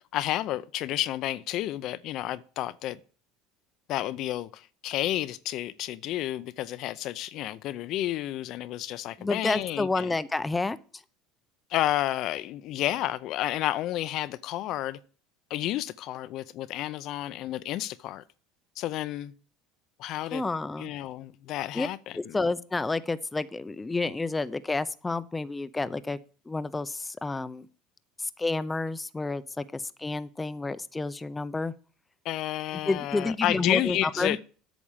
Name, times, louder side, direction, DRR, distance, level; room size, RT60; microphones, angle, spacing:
voice 1, 0.1-3.0 3.9-10.2 11.7-15.0 15.5-18.2 18.8-19.3 20.0-20.4 20.8-22.4 32.2-34.4, left 14 dB, 60° left, 0.6 m, -31 dB
voice 2, 9.2-10.8 20.3-20.9 21.7-21.9 22.1-26.2 26.5-27.7 28.2-31.7 32.9-34.4, left 3 dB, 15° left, 0.6 m, -30 dB
8.6 x 6.1 x 7.2 m
supercardioid pair, 105°, 0 cm